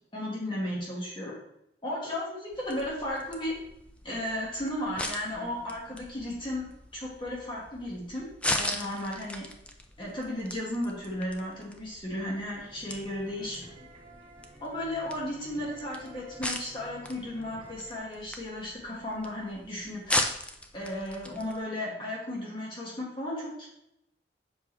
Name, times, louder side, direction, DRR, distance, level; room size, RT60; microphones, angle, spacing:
voice 1, 0.1-1.3 1.8-3.5 4.0-9.4 10.0-13.8 14.6-20.0 20.7-23.7, left 1 dB, 25° left, -5 dB, 1.7 m, -35 dB
sound 1, 2.5-21.6, left 1 dB, 5° left, 0.4 m, -38 dB
sound 2, 12.5-18.0, right 1 dB, 35° right, 2.2 m, -52 dB
7.5 x 5.3 x 3.3 m, 0.83 s
head